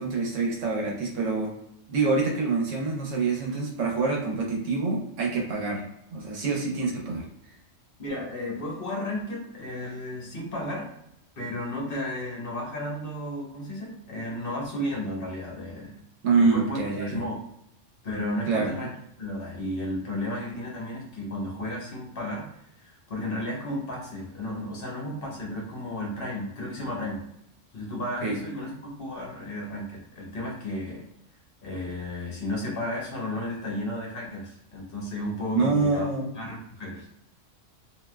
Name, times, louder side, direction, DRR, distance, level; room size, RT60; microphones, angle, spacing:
voice 1, 0.0-1.5 1.9-5.8 6.1-7.3 16.2-17.2 18.5-18.7 28.2-28.4 35.5-36.2, right 4 dB, 85° right, -1 dB, 1.2 m, -26 dB
voice 2, 8.0-10.9 11.4-15.9 16.4-17.4 18.0-18.9 19.2-22.5 22.8-27.2 27.7-31.0 31.6-36.1 36.3-37.1, left 1 dB, 50° left, -2 dB, 1.1 m, -33 dB
3.2 x 2.7 x 2.2 m, 0.78 s
omnidirectional pair, 1.3 m